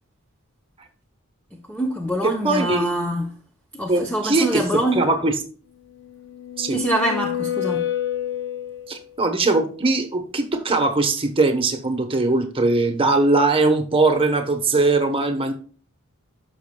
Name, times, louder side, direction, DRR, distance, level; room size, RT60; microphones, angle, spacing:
voice 1, 1.5-3.3 3.7-5.0 6.7-7.9, right 1 dB, 5° left, 0.6 m, -24 dB
voice 2, 2.4-2.9 3.9-4.6 4.9-5.3 6.6-6.8 8.9-15.5, right 3 dB, 25° right, 1.0 m, -20 dB
sound 1, 6.0-9.1, left 11 dB, 55° left, 0.5 m, -28 dB
12.5 x 5.8 x 2.2 m
head